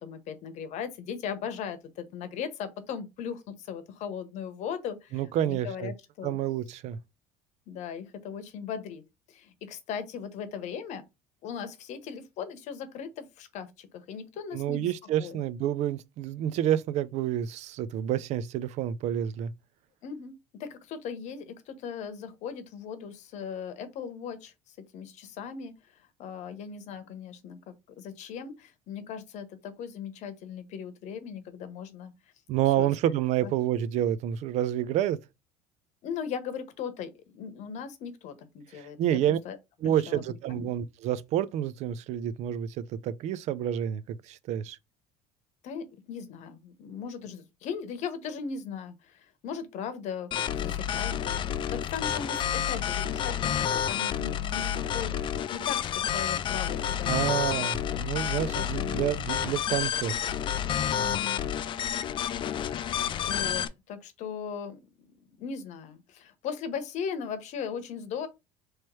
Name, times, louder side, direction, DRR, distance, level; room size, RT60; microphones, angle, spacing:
voice 1, 0.0-6.4 7.7-9.0 9.3-11.0 11.4-14.9 15.2-15.4 20.0-32.1 32.8-32.9 33.4-33.5 36.0-39.2 39.4-39.6 39.8-40.2 40.5-40.7 45.6-58.0 58.5-59.0 60.9-61.4 62.9-65.1 65.4-68.3, left 7 dB, 60° left, 0.9 m, -38 dB
voice 2, 5.1-5.9 6.2-7.0 14.5-19.5 32.5-35.2 38.7-39.4 39.8-44.8 57.1-60.3, right 11 dB, 55° right, 0.4 m, -29 dB
sound 1, 50.3-63.7, left 9 dB, 40° left, 0.4 m, -30 dB
3.2 x 3.0 x 4.5 m
cardioid pair, 115°, 13 cm